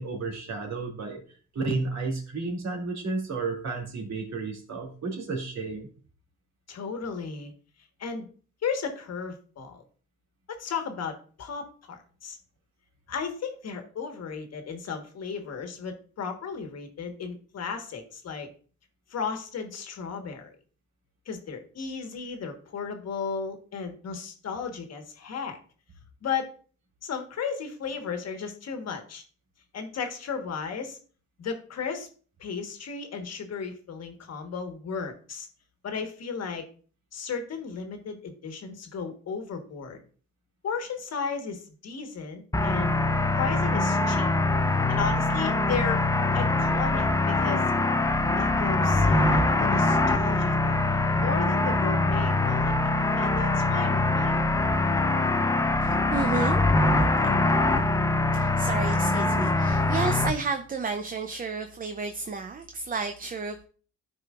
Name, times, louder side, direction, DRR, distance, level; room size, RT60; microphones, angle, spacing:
voice 1, 0.0-5.9, right 3 dB, 60° right, 0 dB, 2.6 m, -32 dB
voice 2, 6.7-7.5 8.0-8.3 8.6-9.8 10.5-12.4 13.1-18.5 19.1-20.6 21.2-25.6 26.2-26.5 27.0-29.2 29.7-31.0 31.4-32.1 32.4-35.5 35.8-36.6 37.1-40.0 40.6-43.0 43.3-44.3 44.9-46.0 46.3-47.7 48.4-54.3, left 6 dB, 60° left, 5 dB, 1.4 m, -34 dB
sound 1, 42.5-60.3, left 2 dB, 10° left, 0.6 m, -23 dB
voice 3, 55.8-56.6 58.3-63.6, right 4 dB, 30° right, 7 dB, 0.6 m, -32 dB
12.0 x 4.8 x 2.5 m, 0.42 s
cardioid pair, 90°, 30 cm